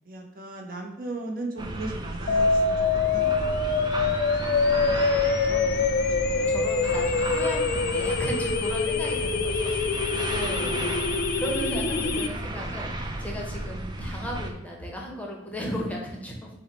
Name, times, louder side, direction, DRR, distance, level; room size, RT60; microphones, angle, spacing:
voice 1, 0.0-2.7 3.1-3.6 6.3-6.6 9.8-10.0 11.5-12.2, right 2 dB, 50° right, 1 dB, 0.8 m, -37 dB
sound 1, 1.6-14.5, right 1 dB, 25° right, 0.4 m, -33 dB
sound 2, 2.3-12.3, left 4 dB, 55° left, 0.4 m, -25 dB
voice 2, 5.4-16.5, equal, 10° left, -1 dB, 0.7 m, -36 dB
5.6 x 2.1 x 4.1 m, 0.90 s
head